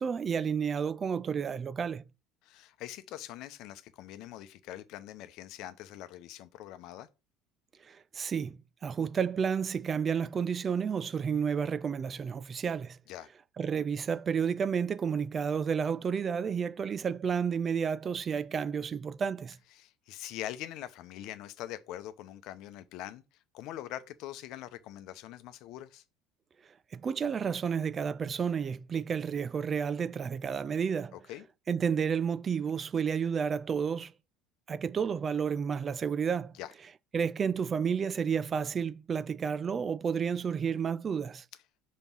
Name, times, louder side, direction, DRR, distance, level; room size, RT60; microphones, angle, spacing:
voice 1, 0.0-2.0 7.9-13.0 13.6-19.6 26.9-31.1 31.7-34.1 34.7-36.5 37.1-41.4, right 6 dB, 35° right, 0.4 m, -31 dB
voice 2, 2.4-7.1 13.1-13.3 19.7-23.2 23.5-26.0 31.1-31.4 36.5-36.7, left 13 dB, 65° left, 0.7 m, -43 dB
5.3 x 4.2 x 5.9 m
hypercardioid pair, 75°, 0 cm